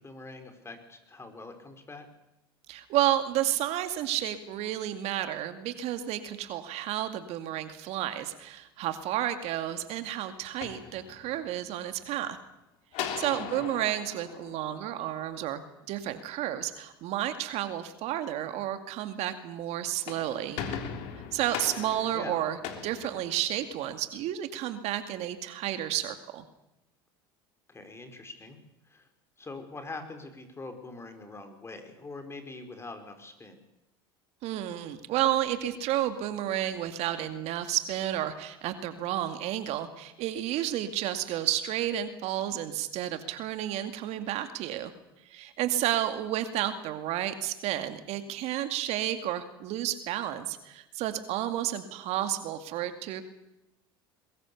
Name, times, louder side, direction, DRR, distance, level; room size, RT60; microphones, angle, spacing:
voice 1, 0.0-2.1 13.3-13.7 22.1-22.4 27.7-28.6 28.9-29.1 29.4-33.6, left 3 dB, 20° left, 6 dB, 5.2 m, -43 dB
voice 2, 2.7-12.4 13.2-15.6 15.9-20.6 21.3-26.4 34.4-44.9 45.2-53.2, right 12 dB, 60° right, 9 dB, 2.2 m, -31 dB
sound 1, 10.4-11.6 12.9-15.4 19.8-23.9, left 8 dB, 60° left, 3.5 m, -39 dB
22.5 x 21.0 x 7.1 m, 0.92 s
hypercardioid pair, 80°, 13 cm